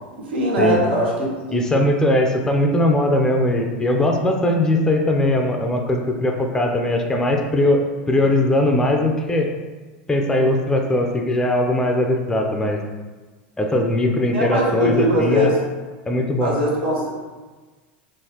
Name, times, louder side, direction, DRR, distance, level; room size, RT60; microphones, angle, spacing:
voice 1, 0.2-1.7 14.3-15.6 16.4-17.1, right 1 dB, 85° right, -3 dB, 1.0 m, -21 dB
voice 2, 1.5-9.5 10.1-12.8 13.6-15.5 16.1-16.5, left 1 dB, 10° left, 2 dB, 0.4 m, -20 dB
3.9 x 2.4 x 2.8 m, 1.3 s
hypercardioid pair, 105°, 6 cm